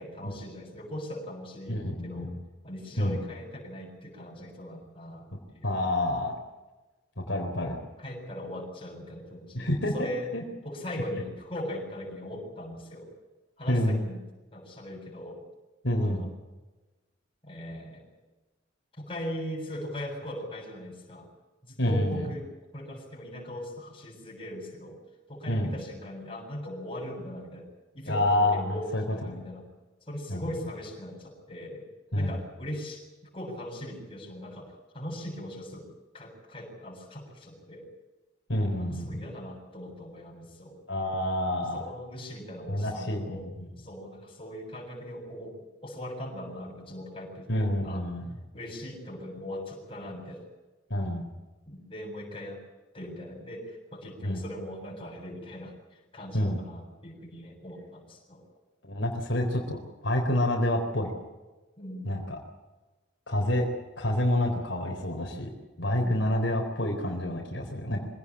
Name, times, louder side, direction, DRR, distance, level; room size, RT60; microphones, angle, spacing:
voice 1, 0.0-2.3 2.6-5.7 8.0-10.3 10.6-13.1 13.6-14.2 14.5-15.4 16.0-16.3 17.4-18.1 18.9-21.3 21.6-22.5 22.7-25.0 25.3-27.7 27.9-29.7 30.1-31.9 32.1-33.0 33.3-35.9 36.1-37.9 38.7-40.8 41.7-43.4 43.8-45.6 45.8-48.0 48.5-50.4 51.7-52.6 52.9-58.4 61.8-62.2, left 1 dB, 30° left, 0 dB, 7.5 m, -40 dB
voice 2, 1.7-2.4 3.0-3.2 5.6-6.4 7.2-7.8 9.5-10.1 10.3-10.4 13.7-14.0 15.8-16.3 21.8-22.3 25.5-25.7 28.1-29.0 29.3-29.4 30.3-30.4 32.1-32.3 38.5-39.2 40.9-41.9 42.7-43.5 47.5-48.3 50.9-51.3 54.2-54.4 56.3-56.6 58.8-61.1 62.1-62.4 63.3-63.7 64.0-65.5 65.8-68.1, left 1 dB, 70° left, 2 dB, 3.9 m, -28 dB
24.5 x 17.5 x 8.7 m, 1.2 s
head